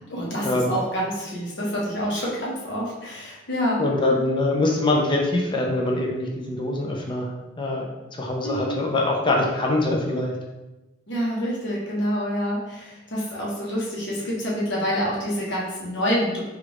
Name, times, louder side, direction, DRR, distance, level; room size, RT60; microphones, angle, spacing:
voice 1, 0.1-4.2 8.4-8.8 11.1-16.4, equal, 60° left, -5 dB, 1.0 m, -27 dB
voice 2, 3.8-7.3 7.6-10.3, left 2 dB, 25° left, -1 dB, 0.5 m, -23 dB
3.3 x 2.5 x 3.0 m, 1.0 s
head